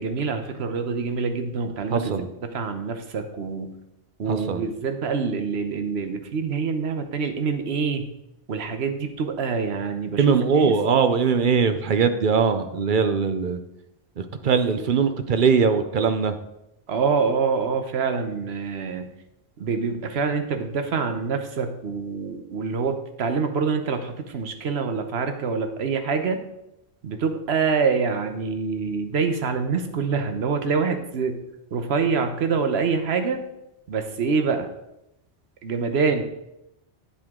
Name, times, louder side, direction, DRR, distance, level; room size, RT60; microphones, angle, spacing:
voice 1, 0.0-3.8 4.2-8.1 8.5-10.8 16.9-19.1 19.6-26.4 27.0-31.4 31.7-33.4 33.9-34.7 35.6-36.2, right 5 dB, 70° right, 7 dB, 1.1 m, -26 dB
voice 2, 1.9-2.3 4.3-4.6 10.2-13.6 14.4-16.3, right 6 dB, 55° right, 9 dB, 0.7 m, -21 dB
8.9 x 7.7 x 3.6 m, 0.86 s
omnidirectional pair, 1.1 m